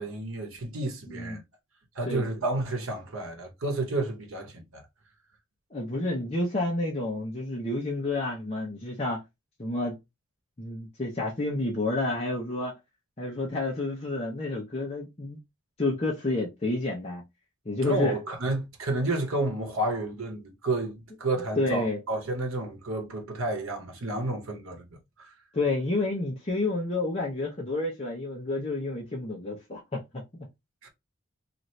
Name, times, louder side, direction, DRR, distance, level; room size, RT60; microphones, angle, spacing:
voice 1, 0.0-1.4 2.0-4.8 17.8-24.9 25.2-25.3 30.8-30.9, right 2 dB, 80° right, 0.9 m, -31 dB
voice 2, 1.1-1.4 2.1-2.3 5.7-9.2 9.6-10.0 10.6-12.7 13.2-15.4 15.8-17.2 17.7-18.2 21.6-22.0 25.5-30.0 30.3-30.5, left 2 dB, 30° left, 0.7 m, -29 dB
2.8 x 2.5 x 3.1 m
head